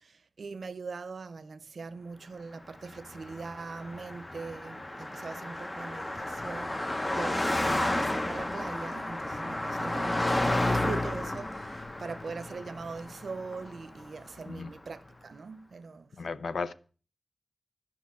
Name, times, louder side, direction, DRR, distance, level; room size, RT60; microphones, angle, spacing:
voice 1, 0.0-16.3, right 4 dB, 80° right, 0.6 m, -41 dB
Car passing by, 2.9-14.4, left 1 dB, 25° left, 0.9 m, -32 dB
voice 2, 16.1-16.7, left 4 dB, 90° left, 0.6 m, -35 dB
11.5 x 5.9 x 6.1 m
wide cardioid pair, 95°, 0 cm